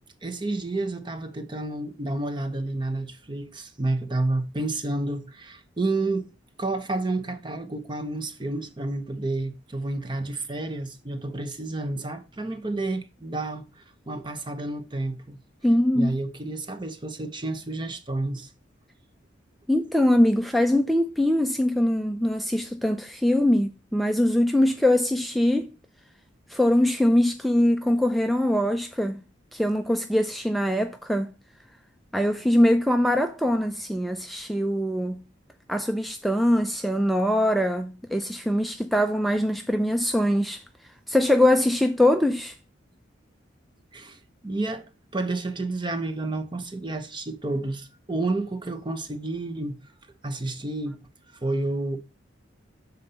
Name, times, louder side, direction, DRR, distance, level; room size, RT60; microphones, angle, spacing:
voice 1, 0.2-6.3 6.6-15.4 15.9-18.5 43.9-49.8 50.2-51.0 51.3-52.0, right 2 dB, 25° right, 0.7 m, -30 dB
voice 2, 15.6-16.1 19.7-25.7 26.5-29.2 29.5-31.3 32.1-35.2 35.7-40.6 41.1-42.5, left 1 dB, ahead, 0.4 m, -22 dB
7.1 x 4.0 x 5.4 m
head